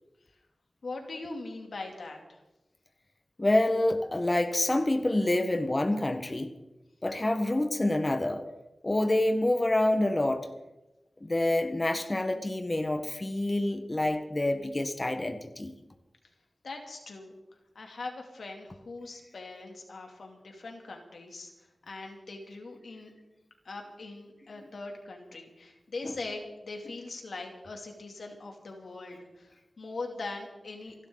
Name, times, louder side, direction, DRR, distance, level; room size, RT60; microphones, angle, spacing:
voice 1, 0.8-2.4 16.6-17.3 17.7-23.1 23.6-30.9, left 3 dB, 90° left, 2 dB, 2.8 m, -41 dB
voice 2, 3.4-6.5 7.0-8.5 8.8-10.5 11.2-15.7 26.0-26.1, left 1 dB, 30° left, 6 dB, 1.4 m, -27 dB
28.5 x 12.0 x 4.0 m, 0.99 s
wide cardioid pair, 85°, 0 cm